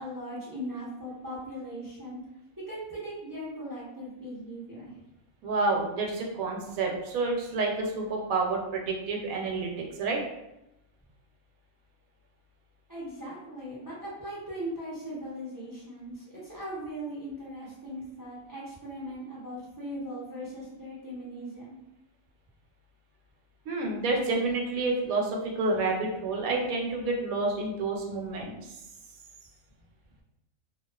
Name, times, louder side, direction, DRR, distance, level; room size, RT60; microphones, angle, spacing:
voice 1, 0.0-2.2 2.7-5.0 12.9-21.8, equal, 35° right, -8 dB, 0.3 m, -39 dB
voice 2, 5.4-10.2 23.7-28.8, right 3 dB, 80° right, 0 dB, 1.0 m, -29 dB
2.4 x 2.3 x 2.3 m, 0.90 s
omnidirectional pair, 1.5 m